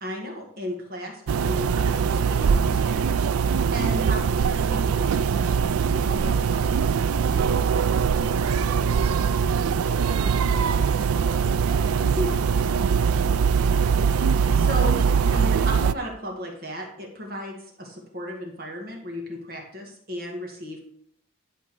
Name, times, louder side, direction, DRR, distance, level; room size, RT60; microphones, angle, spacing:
voice 1, 0.0-7.4 12.0-12.4 14.6-20.8, equal, 45° right, 0 dB, 1.9 m, -35 dB
sound 1, 1.3-15.9, right 6 dB, 85° right, 0.4 m, -22 dB
voice 2, 3.6-4.0 8.0-9.0 9.5-13.0, left 2 dB, 25° left, -5 dB, 3.1 m, -46 dB
12.0 x 4.3 x 6.8 m, 0.66 s
head